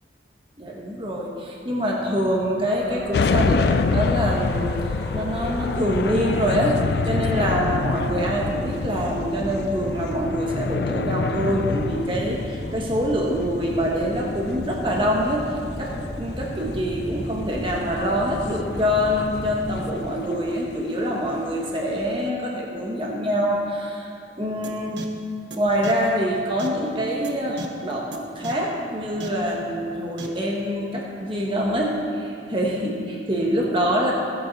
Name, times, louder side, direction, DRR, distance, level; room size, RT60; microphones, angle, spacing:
voice 1, 0.6-15.5 15.8-24.1 24.4-25.1 25.6-34.1, equal, 30° right, -2 dB, 1.5 m, -25 dB
sound 1, 2.7-19.9, equal, 20° left, 1.7 m, -34 dB
sound 2, 3.1-22.3, left 4 dB, 65° left, 0.3 m, -28 dB
sound 3, 24.6-24.7 25.0-25.1 25.5-25.6 25.8-25.9 26.6-26.7 27.2-27.3 27.6-27.7 28.1-28.2 28.4-28.5 29.2-29.3 30.2-30.3, right 3 dB, 85° right, 1.1 m, -34 dB
16.5 x 8.6 x 4.2 m, 2.4 s
head